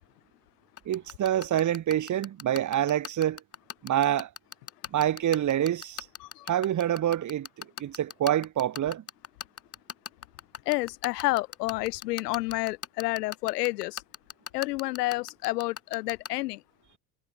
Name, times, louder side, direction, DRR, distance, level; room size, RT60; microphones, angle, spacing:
sound 1, 0.8-16.3, left 7 dB, 30° left, 6.0 m, -37 dB
voice 1, 0.8-3.4 3.8-4.3 4.9-6.1 6.5-7.5 7.8-9.0, right 11 dB, 40° right, 3.3 m, -26 dB
voice 2, 10.7-14.0 14.5-16.6, left 20 dB, 80° left, 4.0 m, -29 dB
supercardioid pair, 100°, 47 cm